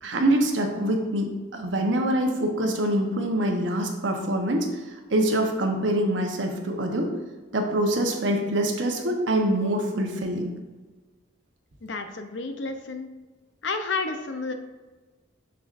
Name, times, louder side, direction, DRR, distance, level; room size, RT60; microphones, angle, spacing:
voice 1, 0.0-4.7 5.1-7.1 7.5-10.5, right 1 dB, 85° right, 2 dB, 1.1 m, -25 dB
voice 2, 11.8-13.1 13.6-14.5, left 4 dB, 80° left, 7 dB, 0.7 m, -31 dB
6.9 x 6.7 x 2.6 m, 1.3 s
head